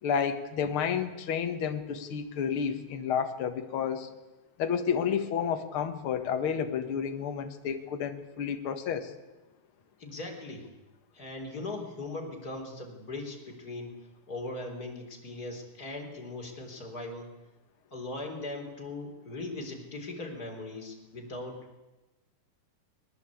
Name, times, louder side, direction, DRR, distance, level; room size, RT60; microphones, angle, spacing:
voice 1, 0.0-4.1 4.6-9.1, left 7 dB, 50° left, 7 dB, 2.0 m, -30 dB
voice 2, 10.0-10.7 11.1-17.3 17.9-21.8, left 2 dB, 25° left, 1 dB, 4.0 m, -39 dB
22.0 x 19.5 x 8.5 m, 1.1 s
omnidirectional pair, 3.8 m